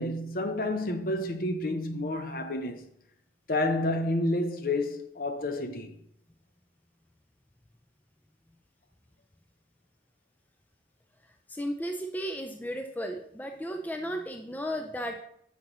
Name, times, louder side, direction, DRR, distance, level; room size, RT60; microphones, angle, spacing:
voice 1, 0.0-2.8 3.5-6.0, left 1 dB, 50° left, 0.7 m, -30 dB
voice 2, 11.5-15.2, equal, 10° left, 0.4 m, -34 dB
9.3 x 6.6 x 3.0 m
head